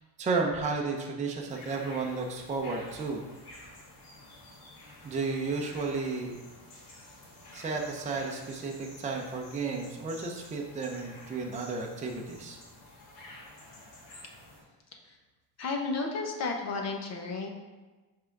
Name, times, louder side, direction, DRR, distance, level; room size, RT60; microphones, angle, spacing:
voice 1, 0.2-3.2 5.0-6.4 7.5-12.6, right 4 dB, 20° right, 0 dB, 0.6 m, -33 dB
sound 1, 1.5-14.6, left 1 dB, 60° left, 2.0 m, -50 dB
voice 2, 15.6-17.5, left 3 dB, 40° left, 2 dB, 0.9 m, -32 dB
5.4 x 3.8 x 5.8 m, 1.2 s
cardioid pair, 165°, 41 cm